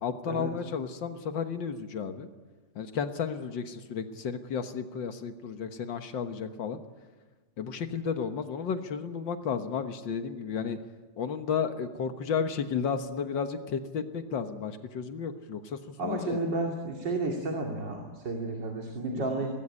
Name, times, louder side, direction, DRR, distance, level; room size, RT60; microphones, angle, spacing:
voice 1, 0.0-2.3 2.8-6.8 7.6-10.8 11.2-15.8 16.0-16.4, left 6 dB, 85° left, 8 dB, 2.0 m, -33 dB
voice 2, 16.0-19.5, right 2 dB, 75° right, 1 dB, 3.3 m, -32 dB
24.5 x 19.0 x 9.9 m, 1.3 s
omnidirectional pair, 2.0 m